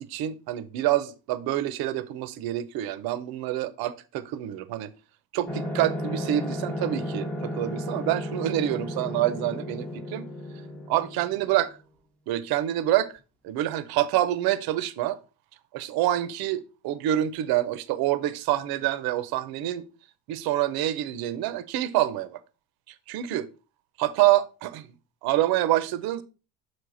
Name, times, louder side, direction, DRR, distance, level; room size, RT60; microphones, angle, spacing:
voice 1, 0.0-4.9 5.3-10.3 10.9-11.8 12.3-13.1 13.4-15.2 15.7-19.8 20.3-22.4 23.1-23.5 24.0-24.9 25.2-26.2, right 13 dB, 60° right, 0.7 m, -27 dB
sound 1, 5.5-11.8, left 1 dB, 5° left, 0.8 m, -33 dB
6.5 x 4.9 x 3.9 m
cardioid pair, 150°, 41 cm